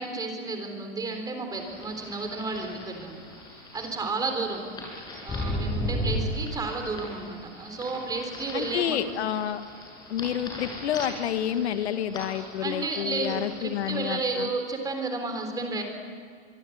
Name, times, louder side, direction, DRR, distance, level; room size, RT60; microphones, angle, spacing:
voice 1, 0.0-3.2 3.5-4.6 5.2-9.0 12.3-15.8, right 3 dB, 10° right, 5 dB, 3.7 m, -32 dB
sound 1, 1.5-14.2, left 1 dB, 10° left, 7.3 m, -37 dB
voice 2, 8.5-9.6 10.1-14.5, left 10 dB, 70° left, 9 dB, 1.7 m, -29 dB
24.5 x 23.5 x 9.4 m, 2.1 s
supercardioid pair, 160°, 34 cm